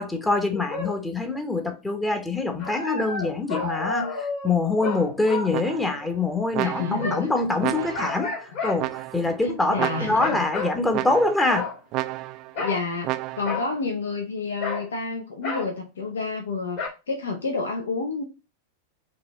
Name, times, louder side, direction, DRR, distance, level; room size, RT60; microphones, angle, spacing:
voice 1, 0.0-11.7, left 2 dB, 10° left, 0.9 m, -25 dB
sound 1, 0.5-1.0 2.6-6.3 7.0-7.4 7.9-8.8 9.3-9.6 10.2-10.8 11.5-11.8 12.6-12.9 13.4-13.7 14.6-14.9 15.4-15.7 16.8-16.9, left 3 dB, 50° left, 1.9 m, -31 dB
sound 2, 5.5-6.1 6.5-7.2 7.6-8.2 8.8-9.4 9.8-10.4 10.9-11.5 11.9-12.5 13.0-13.6, right 17 dB, 40° right, 0.4 m, -31 dB
voice 2, 6.6-7.3 7.8-7.9 9.4-10.4 12.6-16.8 17.1-18.2, left 4 dB, 65° left, 0.8 m, -29 dB
4.9 x 3.1 x 3.0 m
figure-of-eight pair, 90°, 0 cm